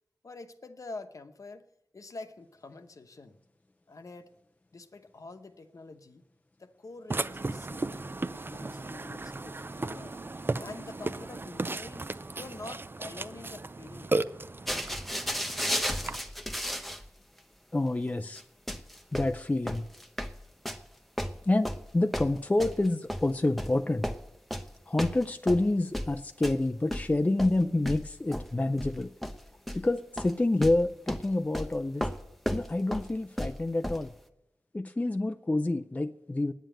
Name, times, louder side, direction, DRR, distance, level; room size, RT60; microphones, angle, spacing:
voice 1, 0.2-1.7 1.9-3.4 3.9-4.3 4.7-6.2 6.6-8.0 8.3-10.2 10.6-14.2, left 3 dB, 55° left, 8 dB, 0.9 m, -46 dB
Burping eructation, 7.1-16.2, right 2 dB, 35° right, 0.5 m, -35 dB
sound 1, 14.7-17.1 17.4-17.5 18.4-18.5 18.7-20.9 21.2-23.8 24.0-24.7 25.0-26.6 26.9-29.9 30.2-30.3 30.6-34.1, equal, ahead, 0.8 m, -34 dB
voice 2, 17.7-18.4 19.1-19.9 21.5-21.7 21.9-24.1 24.9-29.1 29.7-32.1 32.5-34.1 34.7-36.5, left 2 dB, 20° left, 8 dB, 0.5 m, -28 dB
9.2 x 9.2 x 8.9 m, 0.85 s
wide cardioid pair, 75°, 7 cm